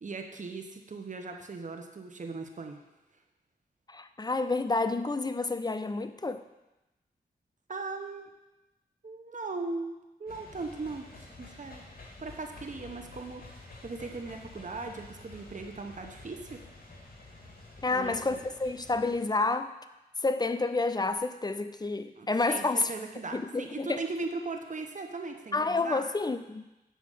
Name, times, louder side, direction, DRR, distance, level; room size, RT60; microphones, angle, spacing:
voice 1, 0.0-2.8 7.7-8.3 9.0-11.8 12.2-16.6 17.9-18.4 22.2-26.0, right 3 dB, 50° right, 4 dB, 1.1 m, -39 dB
voice 2, 3.9-6.4 17.8-19.7 20.2-22.9 23.3-24.0 25.5-26.7, left 3 dB, 25° left, 10 dB, 0.6 m, -29 dB
sound 1, 10.3-19.2, left 2 dB, 65° left, 2.0 m, -50 dB
7.9 x 4.9 x 6.7 m, 0.99 s
cardioid pair, 60°, 17 cm